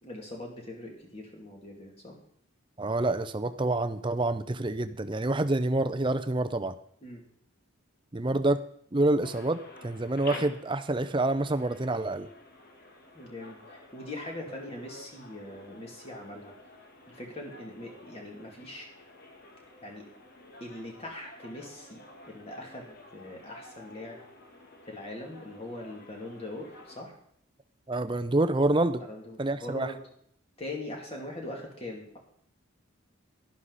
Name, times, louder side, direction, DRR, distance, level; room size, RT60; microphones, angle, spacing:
voice 1, 0.0-2.2 7.0-7.2 13.1-16.5 17.1-18.9 19.8-20.1 20.6-22.0 22.3-24.2 24.9-27.1 29.0-30.0 30.6-32.2, left 1 dB, 30° left, 0 dB, 2.6 m, -41 dB
voice 2, 2.8-6.7 8.1-8.6 8.9-12.3 27.9-29.0 29.4-29.9, right 2 dB, 25° right, 10 dB, 0.6 m, -27 dB
sound 1, 9.2-27.0, left 2 dB, 45° left, 1.6 m, -50 dB
11.5 x 11.5 x 4.1 m, 0.66 s
head